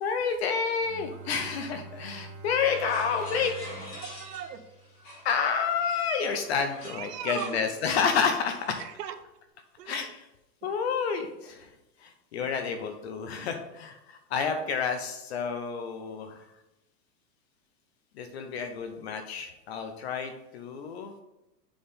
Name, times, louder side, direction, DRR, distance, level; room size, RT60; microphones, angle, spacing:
voice 1, 0.0-3.6 5.2-8.8 9.9-10.3 10.6-11.7 12.0-16.4 18.1-21.1, left 6 dB, 40° left, 6 dB, 0.7 m, -29 dB
Bowed string instrument, 0.8-6.5, right 3 dB, 55° right, 2.6 m, -47 dB
voice 2, 1.1-1.8 4.0-4.6 6.8-7.7 8.8-9.1 9.8-10.1, right 9 dB, 70° right, 8 dB, 1.1 m, -40 dB
sound 1, 2.5-4.6 5.0-8.8, left 1 dB, 25° left, 1.9 m, -43 dB
7.0 x 3.7 x 5.1 m, 0.94 s
supercardioid pair, 160°, 49 cm